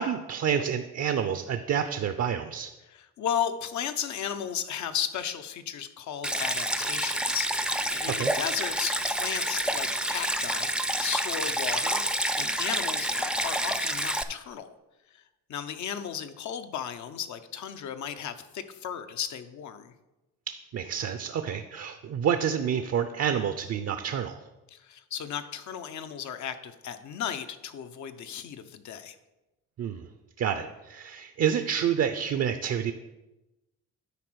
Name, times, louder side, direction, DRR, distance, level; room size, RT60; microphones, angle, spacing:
voice 1, 0.0-2.7 8.1-8.3 20.5-24.4 29.8-30.1 30.4-32.9, right 8 dB, 55° right, 9 dB, 0.6 m, -28 dB
voice 2, 2.9-14.7 15.1-15.2 15.5-19.9 24.7-29.2, left 9 dB, 70° left, 9 dB, 0.8 m, -35 dB
Stream, 6.2-14.2, right 1 dB, 5° right, 0.5 m, -28 dB
9.9 x 4.2 x 6.2 m, 1.0 s
cardioid pair, 90°, 30 cm